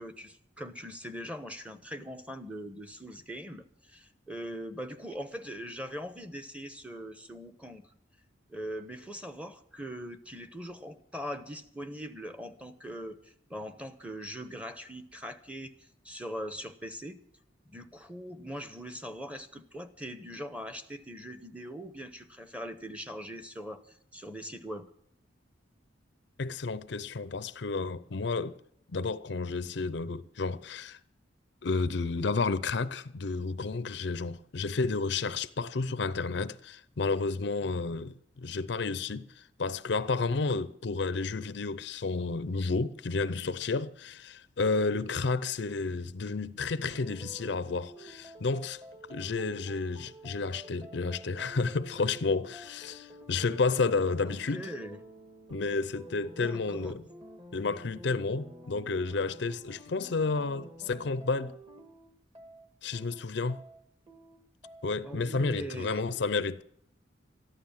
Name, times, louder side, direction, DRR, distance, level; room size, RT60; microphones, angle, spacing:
voice 1, 0.0-7.8 8.5-15.7 16.0-17.2 17.7-23.8 24.1-24.9 54.2-55.0 56.4-57.0 65.0-66.1, equal, 5° right, 1.0 m, -41 dB
voice 2, 26.4-28.6 28.9-31.0 31.6-48.8 49.1-54.6 55.5-57.0 57.5-61.6 62.8-63.6 64.8-66.6, left 4 dB, 60° left, 0.6 m, -31 dB
sound 1, 46.9-65.2, right 1 dB, 25° right, 1.8 m, -50 dB
14.0 x 11.5 x 7.3 m
head